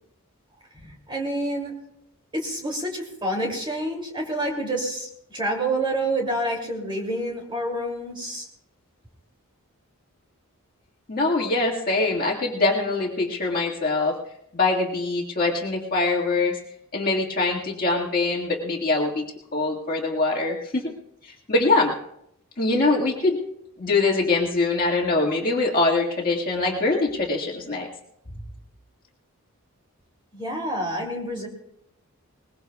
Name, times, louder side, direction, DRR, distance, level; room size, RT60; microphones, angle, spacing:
voice 1, 0.7-1.7 2.3-8.5 30.3-31.5, right 1 dB, 20° right, 0 dB, 2.8 m, -28 dB
voice 2, 11.1-14.1 14.5-16.6 16.9-19.3 19.5-20.9 21.2-21.9 22.6-23.4 23.8-27.9, left 3 dB, 40° left, -3 dB, 1.9 m, -23 dB
21.5 x 20.0 x 2.4 m, 0.76 s
head